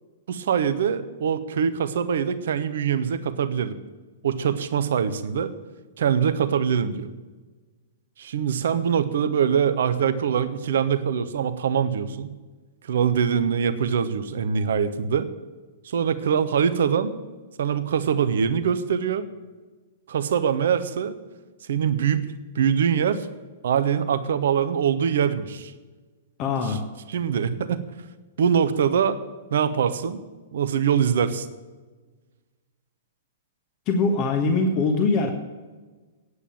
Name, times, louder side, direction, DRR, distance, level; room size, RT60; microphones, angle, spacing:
voice 1, 0.3-3.7 4.2-5.5 6.0-7.1 8.2-12.3 12.8-15.3 15.8-17.2 17.6-19.3 20.1-21.2 21.7-22.3 22.5-23.3 23.6-25.7 26.7-26.8 27.1-27.8 28.4-29.2 29.5-30.2 30.5-31.5, right 7 dB, 60° right, 12 dB, 0.9 m, -23 dB
voice 2, 26.4-26.8 33.9-35.3, left 3 dB, 35° left, 4 dB, 1.4 m, -22 dB
9.6 x 8.3 x 8.9 m, 1.3 s
figure-of-eight pair, 105°, 0 cm